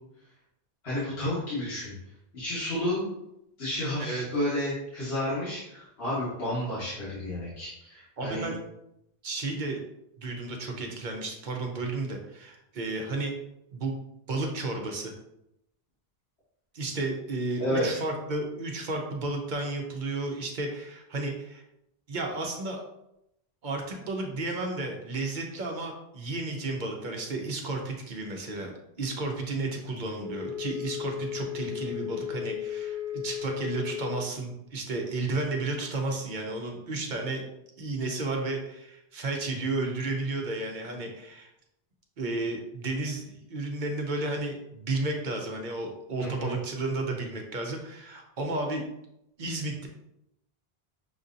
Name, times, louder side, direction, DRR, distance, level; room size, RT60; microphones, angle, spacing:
voice 1, 0.8-1.9 2.3-3.1 3.6-8.5 17.6-17.9 46.2-46.5, left 1 dB, 70° left, -10 dB, 1.6 m, -31 dB
voice 2, 8.2-8.6 9.2-9.8 10.2-13.3 13.7-13.9 14.3-15.1 16.7-21.6 22.1-22.8 23.6-37.4 37.8-41.5 42.2-48.8 49.4-49.9, right 2 dB, 50° right, 2 dB, 0.8 m, -32 dB
Wind instrument woodwind instrument, 30.1-34.3, left 10 dB, 80° right, 0.9 m, -35 dB
6.0 x 2.7 x 2.5 m, 0.83 s
omnidirectional pair, 1.1 m